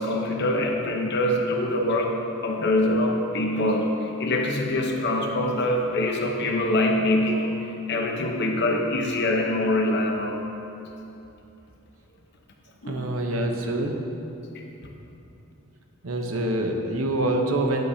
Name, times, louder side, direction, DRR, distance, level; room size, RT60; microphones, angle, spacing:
voice 1, 0.0-7.6 7.9-10.4 12.8-13.1 14.5-14.9, left 1 dB, 55° left, 1 dB, 0.9 m, -24 dB
voice 2, 12.9-14.0 16.0-17.8, right 1 dB, 80° right, 3 dB, 0.9 m, -25 dB
11.0 x 8.2 x 2.8 m, 2.9 s
head